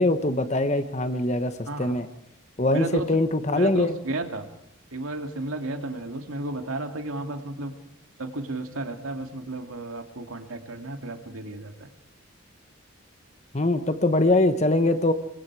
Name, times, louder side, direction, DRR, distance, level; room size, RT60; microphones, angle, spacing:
voice 1, 0.0-2.1 2.6-3.9 13.5-15.1, left 2 dB, 35° left, 9 dB, 1.1 m, -22 dB
voice 2, 1.7-2.0 2.7-3.0 3.5-4.4 4.9-7.8 8.2-11.9, right 2 dB, 85° right, 5 dB, 2.5 m, -33 dB
27.0 x 23.5 x 4.8 m, 0.76 s
head